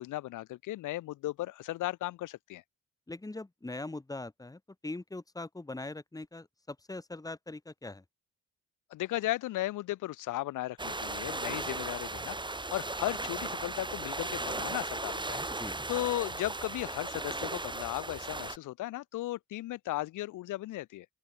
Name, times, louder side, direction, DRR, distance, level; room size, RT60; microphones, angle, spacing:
voice 1, 0.0-2.6 8.9-15.4 15.9-21.1, left 16 dB, 90° left, 2.0 m, -36 dB
voice 2, 3.1-8.0 15.6-15.8, left 2 dB, 10° left, 2.1 m, -41 dB
sound 1, 10.8-18.6, right 2 dB, 15° right, 4.7 m, -36 dB
open air
cardioid pair, 90°, 30 cm